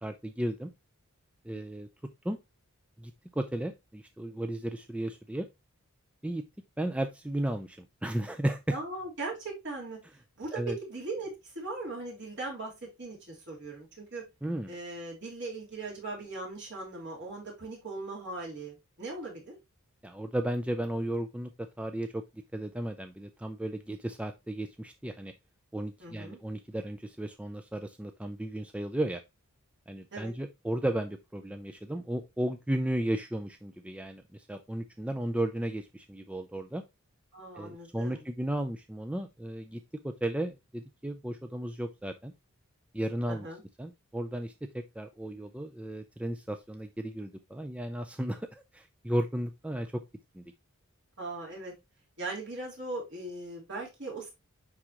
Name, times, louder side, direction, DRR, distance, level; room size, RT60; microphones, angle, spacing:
voice 1, 0.0-0.7 1.4-1.9 2.2-2.4 3.0-5.5 6.2-6.4 6.8-8.8 10.5-10.8 14.4-14.7 20.0-22.2 22.5-25.3 25.7-29.2 29.9-36.8 37.6-42.3 42.9-43.5 43.8-50.0 50.3-50.4, right 1 dB, 5° right, 7 dB, 0.4 m, -34 dB
voice 2, 8.7-10.0 10.4-10.6 10.9-12.7 13.0-14.2 14.7-19.6 26.0-26.4 30.1-30.3 37.3-38.2 43.3-43.6 51.2-51.7 52.2-54.3, right 2 dB, 55° right, -3 dB, 3.5 m, -39 dB
9.5 x 3.7 x 2.9 m, 0.22 s
head